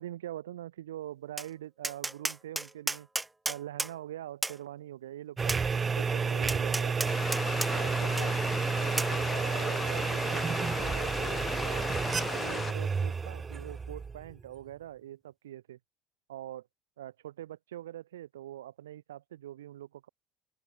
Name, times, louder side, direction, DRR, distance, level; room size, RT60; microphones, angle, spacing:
voice 1, 0.0-3.1 3.5-7.1 7.7-8.4 8.8-11.9 12.3-15.8 16.3-16.7 17.0-20.1, right 12 dB, 85° right, 1.5 m, -43 dB
Tap, 1.4-1.5 1.8-3.9 4.4-4.6 5.5-5.6 6.5-7.7 8.2-8.3 9.0-9.1, right 2 dB, 15° right, 1.2 m, -32 dB
sound 1, 5.4-14.5, right 5 dB, 30° right, 0.4 m, -31 dB
sound 2, 7.0-12.7, left 7 dB, 40° left, 0.4 m, -37 dB
open air
hypercardioid pair, 65°, 0 cm